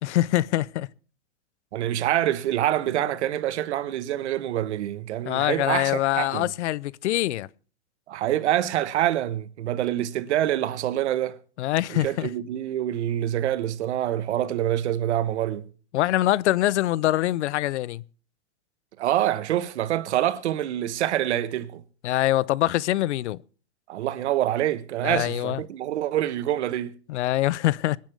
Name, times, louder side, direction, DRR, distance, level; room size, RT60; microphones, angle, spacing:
voice 1, 0.0-0.9 5.2-7.5 11.6-12.3 15.9-18.0 22.0-23.4 25.0-25.6 27.1-28.0, left 15 dB, 85° left, 0.6 m, -24 dB
voice 2, 1.7-6.5 8.1-11.4 11.9-15.7 19.0-21.8 23.9-26.9, right 12 dB, 80° right, 1.3 m, -26 dB
24.5 x 10.5 x 3.4 m
supercardioid pair, 140°, 34 cm